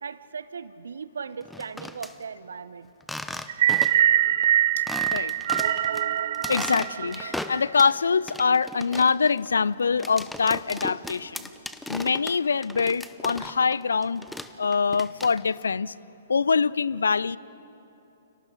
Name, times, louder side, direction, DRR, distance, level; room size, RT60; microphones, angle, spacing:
voice 1, 0.0-2.9, right 6 dB, 70° right, 16 dB, 0.8 m, -38 dB
sound 1, 1.4-2.1 3.0-4.1 4.4-4.5 4.9-6.0 6.3-8.0 8.3-13.8 14.0-15.6, left 1 dB, 5° left, 0.8 m, -36 dB
sound 2, 3.5-7.8, right 11 dB, 50° right, 0.5 m, -23 dB
voice 2, 6.5-11.5 11.9-14.3 14.6-15.9 16.3-17.4, left 5 dB, 70° left, 22 dB, 0.4 m, -24 dB
30.0 x 29.5 x 3.9 m, 3.0 s
figure-of-eight pair, 120°, 0 cm